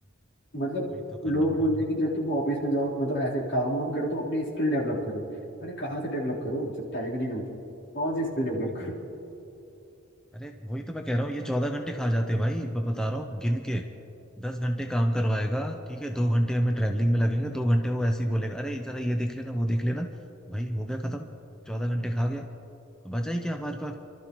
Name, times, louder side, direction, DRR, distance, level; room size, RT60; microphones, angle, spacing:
voice 1, 0.5-0.9 1.2-5.2 5.6-7.5 7.9-9.0, equal, 60° left, -6 dB, 3.6 m, -28 dB
voice 2, 8.6-8.9 10.3-13.8 14.4-20.1 20.5-21.3 21.7-22.5 23.0-24.0, equal, 5° left, 3 dB, 0.6 m, -28 dB
28.5 x 12.5 x 3.0 m, 2.8 s
head